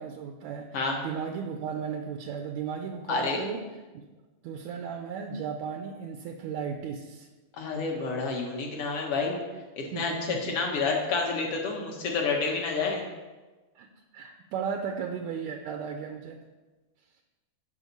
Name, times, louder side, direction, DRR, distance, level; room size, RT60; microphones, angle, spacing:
voice 1, 0.0-3.6 3.9-4.1 4.4-7.3 9.9-10.6 12.8-12.9 13.8-13.9 14.1-16.4, right 6 dB, 75° right, 5 dB, 1.9 m, -35 dB
voice 2, 3.1-3.4 7.6-9.4 9.8-13.0, left 4 dB, 55° left, 1 dB, 2.2 m, -29 dB
11.0 x 5.9 x 5.4 m, 1.2 s
omnidirectional pair, 3.6 m